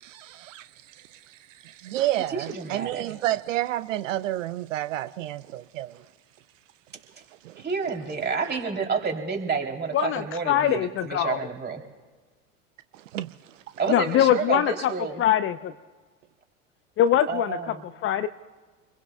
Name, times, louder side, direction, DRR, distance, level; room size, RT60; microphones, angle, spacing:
voice 1, 0.0-6.0 7.4-7.6 8.5-8.6 12.9-13.4, right 14 dB, 75° right, 0.6 m, -31 dB
voice 2, 2.3-3.0 7.6-11.8 13.8-15.1 17.3-17.7, right 5 dB, 25° right, 3.1 m, -29 dB
voice 3, 9.9-11.5 13.9-15.7 17.0-18.3, left 10 dB, 35° left, 0.6 m, -23 dB
27.5 x 22.0 x 2.3 m
hypercardioid pair, 85°, 39 cm